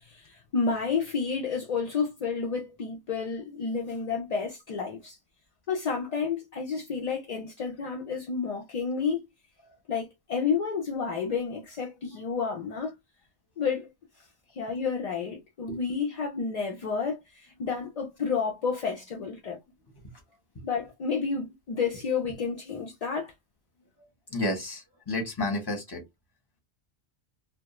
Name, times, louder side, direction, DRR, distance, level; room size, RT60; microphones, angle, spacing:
voice 1, 0.0-5.2 5.7-9.2 9.9-12.9 13.6-13.9 14.6-19.6 20.6-23.3, left 5 dB, 55° left, 0.4 m, -30 dB
voice 2, 24.3-26.0, left 1 dB, 25° left, 0.8 m, -31 dB
2.3 x 2.1 x 2.9 m
omnidirectional pair, 1.1 m